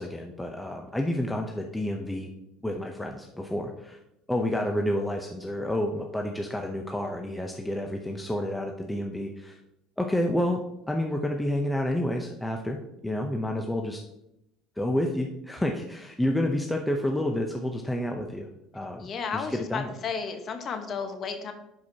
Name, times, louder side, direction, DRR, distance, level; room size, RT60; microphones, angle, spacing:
voice 1, 0.0-2.3 2.6-4.0 4.3-9.6 10.0-10.6 10.9-14.0 14.8-18.5 18.7-19.9, left 1 dB, 5° left, 2 dB, 0.7 m, -29 dB
voice 2, 19.0-21.5, left 5 dB, 45° left, 6 dB, 1.1 m, -33 dB
11.0 x 4.7 x 2.8 m, 0.84 s
supercardioid pair, 95°, 0 cm